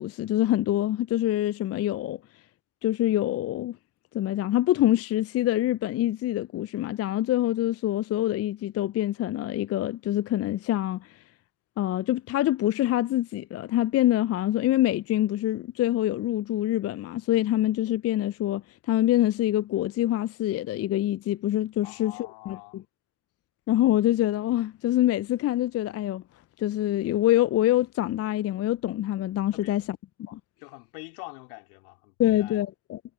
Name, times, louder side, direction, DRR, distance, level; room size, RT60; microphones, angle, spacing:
voice 1, 0.0-2.2 2.8-3.8 4.1-11.2 11.8-22.8 23.7-26.2 26.6-30.4 32.2-33.0, left 14 dB, 35° left, 0.6 m, -25 dB
voice 2, 21.8-22.8 29.5-29.8 30.6-32.6, left 34 dB, 65° left, 3.1 m, -44 dB
hypercardioid pair, 70°, 45 cm